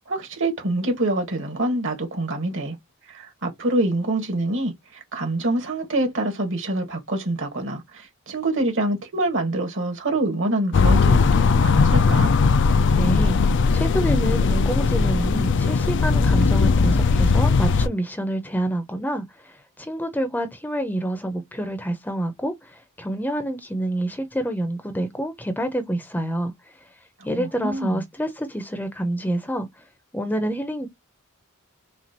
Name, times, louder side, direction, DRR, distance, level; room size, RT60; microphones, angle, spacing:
voice 1, 0.1-2.8 3.1-12.3 27.3-28.0, right 1 dB, 60° right, 1.6 m, -26 dB
sound 1, 10.7-17.9, left 4 dB, 55° left, 0.4 m, -18 dB
voice 2, 13.0-26.5 27.2-29.8 30.1-30.9, right 1 dB, 10° left, 0.7 m, -27 dB
5.9 x 2.5 x 2.8 m
head